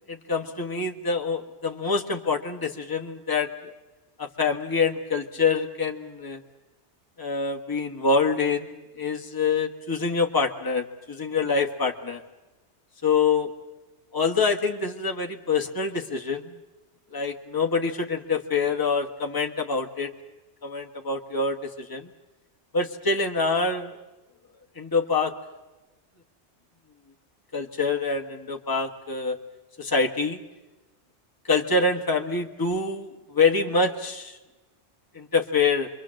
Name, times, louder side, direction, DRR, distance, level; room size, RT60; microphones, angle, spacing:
voice 1, 0.1-3.5 4.2-6.4 7.2-12.2 13.0-13.5 14.1-16.6 17.1-20.1 20.6-22.1 22.7-23.9 24.7-25.3 27.5-29.4 29.8-30.4 31.4-34.4 35.1-35.9, left 4 dB, 20° left, 2 dB, 1.5 m, -26 dB
26.5 x 23.5 x 7.7 m, 1.1 s
omnidirectional pair, 1.2 m